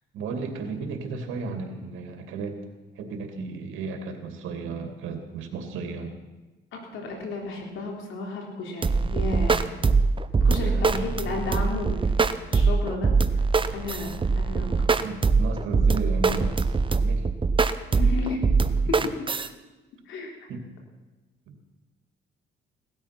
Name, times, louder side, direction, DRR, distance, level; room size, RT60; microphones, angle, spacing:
voice 1, 0.1-2.6 2.9-6.2 10.5-11.0 14.8-17.3 18.0-18.1 18.6-19.0 20.5-20.7 21.5-21.6, right 4 dB, 90° right, 5 dB, 2.4 m, -34 dB
voice 2, 6.7-9.8 10.4-13.1 13.7-15.0 17.9-18.4 18.9-19.1 20.1-20.5, left 3 dB, 80° left, 1 dB, 3.6 m, -33 dB
sound 1, 8.8-19.5, right 4 dB, 25° right, 0.9 m, -22 dB
17.5 x 13.0 x 5.9 m, 1.2 s
cardioid pair, 90°, 20 cm